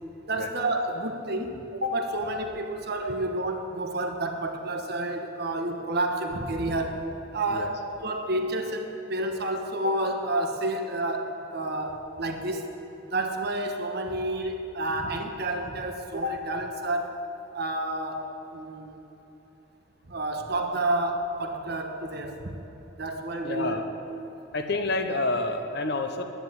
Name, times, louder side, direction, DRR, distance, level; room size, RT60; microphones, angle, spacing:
voice 1, 0.3-7.0 7.3-12.7 13.1-17.1 17.5-19.0 20.1-22.4 23.0-23.8, right 1 dB, 50° right, 4 dB, 1.2 m, -30 dB
voice 2, 23.4-23.8 24.5-26.2, left 2 dB, 55° left, 6 dB, 1.0 m, -28 dB
10.5 x 10.5 x 9.3 m, 3.0 s
head